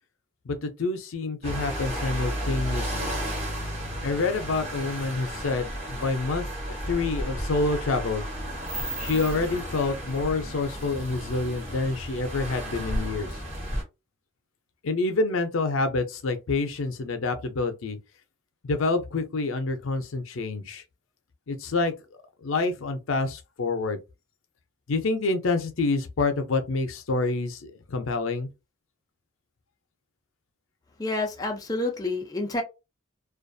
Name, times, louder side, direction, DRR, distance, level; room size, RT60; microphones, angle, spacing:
voice 1, 0.5-3.1 4.0-8.2 9.0-13.3 14.8-18.0 18.6-20.8 21.5-21.9 22.4-24.0 24.9-28.5, left 3 dB, 80° left, 0.5 m, -27 dB
sound 1, 1.4-13.8, equal, 30° right, 1.2 m, -33 dB
voice 2, 31.0-32.6, left 2 dB, 20° left, 0.4 m, -28 dB
2.5 x 2.3 x 2.6 m
head